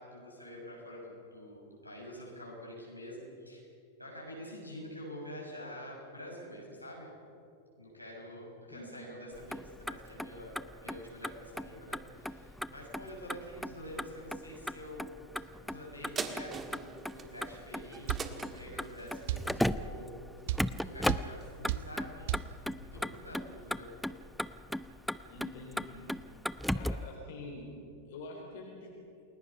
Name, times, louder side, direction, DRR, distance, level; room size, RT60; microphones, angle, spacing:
voice 1, 0.0-3.6 4.0-7.1 7.8-23.9, equal, 90° left, -4 dB, 6.4 m, -47 dB
Motor vehicle (road), 9.3-27.1, equal, ahead, 0.5 m, -38 dB
sound 1, 16.2-20.9 21.4-21.5, right 5 dB, 20° right, 1.6 m, -43 dB
sound 2, 18.1-18.3 19.3-19.5 20.5-20.7 21.1-21.3 21.7-21.9 22.3-22.5, right 15 dB, 50° right, 0.6 m, -32 dB
voice 2, 25.3-26.1 26.7-27.7 28.1-29.2, left 2 dB, 55° left, 0 dB, 4.1 m, -46 dB
29.0 x 20.0 x 5.6 m, 2.7 s
figure-of-eight pair, 90°, 0 cm